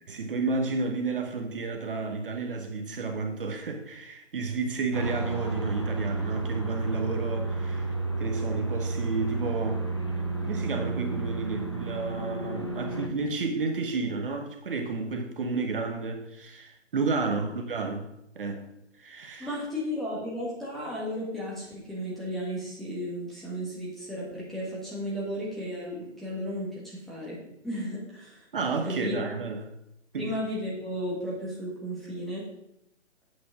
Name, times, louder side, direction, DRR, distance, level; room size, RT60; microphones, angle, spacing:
voice 1, 0.1-7.9 8.2-9.9 10.4-18.1 18.4-18.7 19.0-19.5 28.5-29.6 30.1-30.4, right 4 dB, 45° right, 1.0 m, -31 dB
sound 1, 4.9-13.1, right 3 dB, 25° left, 0.4 m, -31 dB
voice 2, 19.4-28.5 28.8-29.2 30.2-32.5, equal, ahead, 1.6 m, -34 dB
8.4 x 6.2 x 4.9 m
figure-of-eight pair, 150°, 37 cm